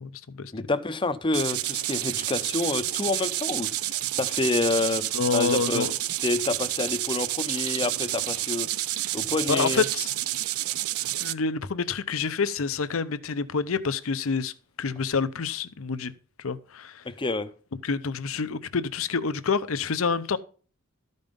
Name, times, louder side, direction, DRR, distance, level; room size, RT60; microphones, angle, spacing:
voice 1, 0.0-0.5 5.1-5.9 9.5-10.1 11.2-14.5 14.8-16.1 16.4-17.0 17.8-20.4, left 5 dB, 70° left, 0.7 m, -27 dB
voice 2, 0.5-5.1 5.3-5.9 6.2-8.7 9.1-9.8 17.1-17.5, left 3 dB, 25° left, 0.6 m, -28 dB
sound 1, 1.3-11.3, right 15 dB, 85° right, 0.4 m, -29 dB
13.0 x 5.4 x 5.2 m
head